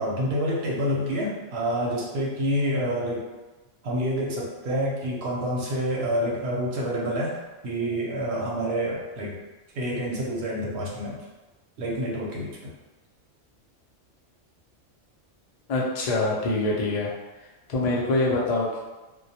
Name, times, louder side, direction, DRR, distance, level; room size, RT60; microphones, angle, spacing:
voice 1, 0.0-3.3 3.8-7.4 7.6-9.4 9.7-11.2 11.8-12.7, equal, 60° right, -3 dB, 0.8 m, -28 dB
voice 2, 15.7-17.1 17.4-18.8, left 2 dB, 85° left, -3 dB, 0.3 m, -25 dB
2.1 x 2.1 x 2.7 m, 1.1 s
omnidirectional pair, 1.3 m